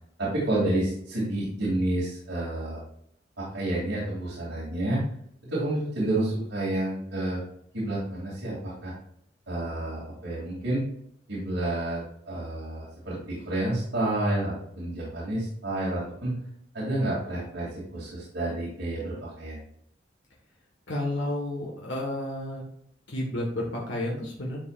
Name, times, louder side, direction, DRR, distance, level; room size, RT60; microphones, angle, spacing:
voice 1, 0.2-2.8 3.4-5.0 5.4-7.4 7.7-8.9 9.5-10.9 11.3-16.3 16.7-19.6, right 1 dB, 85° right, -9 dB, 2.7 m, -29 dB
voice 2, 20.9-22.6 23.1-24.6, left 1 dB, 90° left, -2 dB, 1.6 m, -31 dB
11.0 x 4.8 x 2.5 m, 0.70 s
head